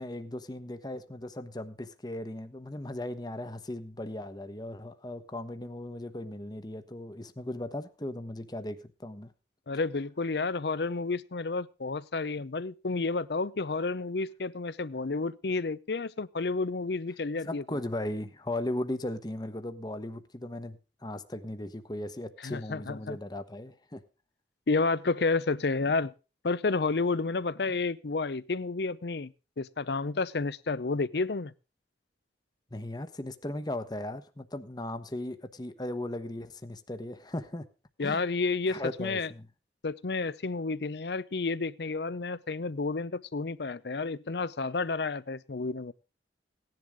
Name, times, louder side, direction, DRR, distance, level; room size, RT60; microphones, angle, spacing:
voice 1, 0.0-9.3 17.4-24.0 32.7-37.7 38.0-38.2 38.7-39.5, left 1 dB, 25° left, 1.0 m, -37 dB
voice 2, 9.7-17.6 22.4-23.2 24.7-26.1 26.4-31.5 38.0-39.3 39.8-45.9, left 3 dB, 65° left, 0.6 m, -31 dB
17.0 x 10.5 x 3.6 m
head